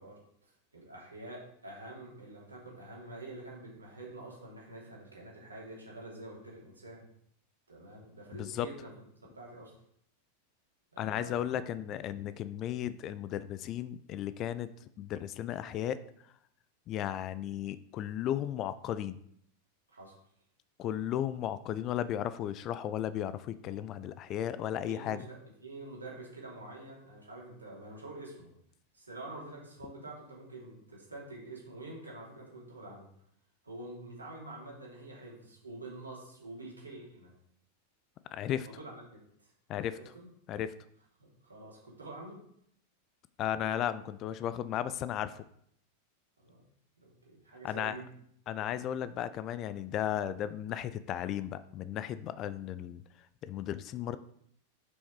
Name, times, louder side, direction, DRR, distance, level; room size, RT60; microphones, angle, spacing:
voice 1, 0.0-7.1 7.7-8.9 9.2-9.7 10.9-11.5 19.9-20.2 24.9-28.5 28.9-33.1 33.6-37.3 38.6-39.5 39.9-40.3 41.2-42.4 46.4-46.6 47.0-48.1, right 2 dB, 80° right, -3 dB, 2.8 m, -47 dB
voice 2, 11.0-14.7 15.0-16.0 16.9-19.2 20.8-25.3 38.3-38.7 39.7-40.0 40.5-40.7 43.4-45.4 47.6-48.0 48.5-53.0 53.4-54.2, left 11 dB, 35° left, 14 dB, 0.4 m, -35 dB
6.3 x 5.8 x 4.7 m, 0.68 s
figure-of-eight pair, 90°, 0 cm